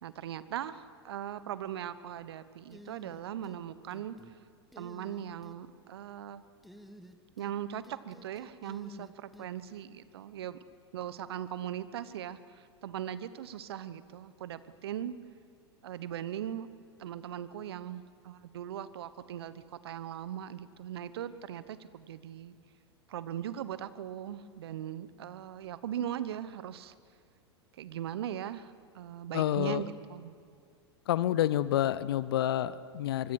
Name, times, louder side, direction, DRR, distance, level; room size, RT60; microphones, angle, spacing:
voice 1, 0.0-4.3 4.8-6.4 7.4-10.6 10.9-15.1 15.8-16.7 17.0-22.6 23.1-26.9 27.7-30.3, right 10 dB, 65° right, 15 dB, 1.1 m, -39 dB
sound 1, 2.7-3.6 3.9-4.4 4.7-5.6 6.6-7.6 7.8-9.5, equal, ahead, 1.7 m, -52 dB
voice 2, 29.3-29.8 31.1-33.3, left 12 dB, 60° left, 17 dB, 0.8 m, -28 dB
25.0 x 24.0 x 6.5 m, 2.3 s
figure-of-eight pair, 90°, 14 cm